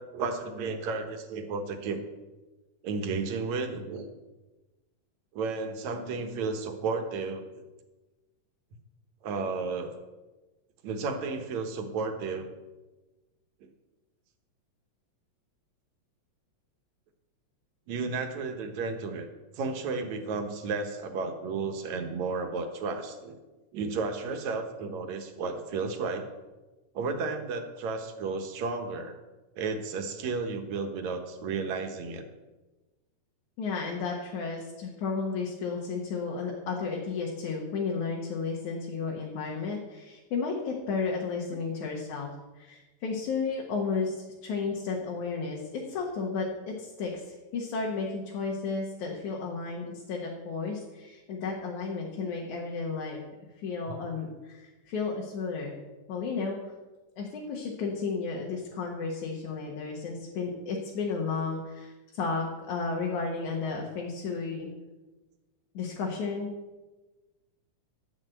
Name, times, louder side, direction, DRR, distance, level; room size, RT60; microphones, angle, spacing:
voice 1, 0.0-2.0 2.8-4.1 5.3-7.5 9.2-10.0 10.8-12.5 17.9-19.3 19.6-23.4 23.7-26.2 27.0-29.2 29.6-32.3, right 4 dB, 70° right, 6 dB, 2.4 m, -33 dB
voice 2, 33.6-42.3 42.6-47.2 47.5-53.2 53.6-55.8 56.1-56.6 57.2-64.7 65.7-66.5, left 4 dB, 75° left, -1 dB, 2.8 m, -33 dB
11.5 x 6.4 x 8.0 m, 1.2 s
omnidirectional pair, 3.4 m